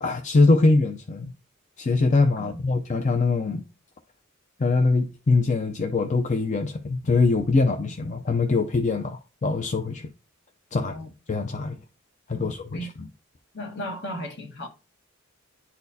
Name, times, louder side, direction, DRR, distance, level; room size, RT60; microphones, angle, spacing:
voice 1, 0.0-1.3 1.8-3.6 4.6-10.1 10.7-11.0 11.3-11.8 12.3-13.1, left 3 dB, 35° left, 0.5 m, -23 dB
voice 2, 10.8-11.1 12.3-12.9 13.5-14.7, equal, 55° left, 1.5 m, -35 dB
10.5 x 4.3 x 2.7 m
head